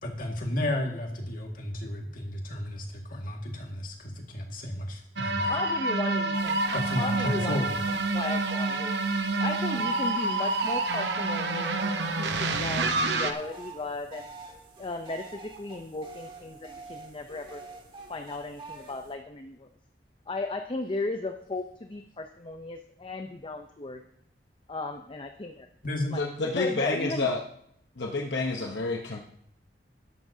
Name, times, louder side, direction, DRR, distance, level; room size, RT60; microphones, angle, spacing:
voice 1, 0.0-5.6 6.7-7.8 25.8-26.2, left 1 dB, 55° left, 2 dB, 1.9 m, -33 dB
sound 1, 5.2-13.3, right 3 dB, 75° right, 0.9 m, -28 dB
voice 2, 5.5-6.6 7.0-9.0 9.4-14.3 14.8-17.6 18.1-19.7 20.3-24.0 24.7-25.7 26.1-27.3, left 2 dB, 30° left, 6 dB, 0.6 m, -35 dB
sound 2, 6.3-19.1, right 1 dB, 30° right, 1.7 m, -46 dB
voice 3, 26.2-27.4 28.0-29.2, left 3 dB, 75° left, 1 dB, 0.9 m, -29 dB
13.0 x 11.0 x 2.7 m, 0.68 s
head